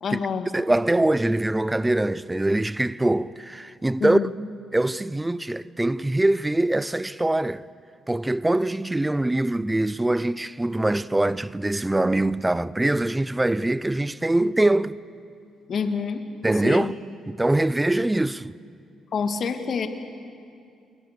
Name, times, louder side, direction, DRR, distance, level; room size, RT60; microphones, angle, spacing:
voice 1, 0.0-0.5 4.0-4.3 15.7-16.2 16.6-16.9 19.1-19.9, left 6 dB, 55° left, 1.9 m, -27 dB
voice 2, 0.5-4.2 4.7-7.6 8.1-15.0 16.4-16.9 17.3-18.5, right 1 dB, 10° right, 0.6 m, -23 dB
28.5 x 21.5 x 6.8 m
cardioid pair, 90°, 0 cm